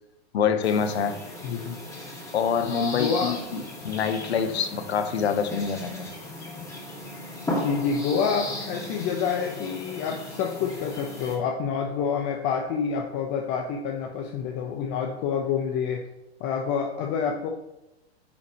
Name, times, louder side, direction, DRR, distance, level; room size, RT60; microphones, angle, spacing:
voice 1, 0.3-1.2 2.3-6.1, left 7 dB, 70° left, 9 dB, 1.2 m, -26 dB
sound 1, 0.6-11.3, left 1 dB, 10° left, 2.4 m, -36 dB
voice 2, 1.4-1.8 2.9-3.4 7.6-16.0 16.4-17.5, left 6 dB, 35° left, 2 dB, 1.1 m, -28 dB
9.9 x 6.7 x 3.2 m, 0.92 s
hypercardioid pair, 120°, 33 cm